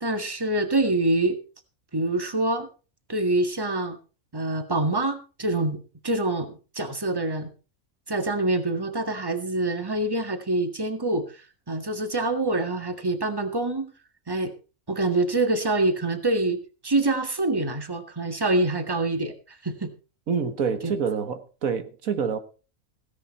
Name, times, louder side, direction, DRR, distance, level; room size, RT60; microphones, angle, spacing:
voice 1, 0.0-1.4 1.9-2.7 3.1-4.0 4.3-7.5 8.1-11.4 11.7-13.9 14.3-14.5 14.9-19.9 20.8-20.9, right 2 dB, 15° right, 1.8 m, -25 dB
voice 2, 20.3-22.4, right 6 dB, 85° right, 1.8 m, -27 dB
16.5 x 10.5 x 4.2 m
omnidirectional pair, 1.4 m